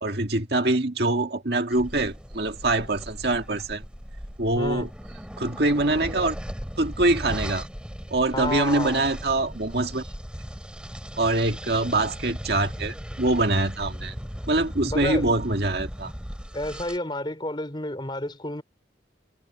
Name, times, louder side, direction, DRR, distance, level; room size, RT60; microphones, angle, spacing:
voice 1, 0.0-3.8 4.4-4.9 5.4-6.4 6.8-7.7 8.1-10.0 11.2-14.2 14.5-16.1, right 2 dB, 55° right, 2.0 m, -24 dB
sound 1, 1.7-17.0, equal, 5° right, 4.1 m, -37 dB
voice 2, 4.6-4.9 8.3-9.0 14.8-15.3 16.5-18.6, left 1 dB, 25° left, 3.9 m, -30 dB
head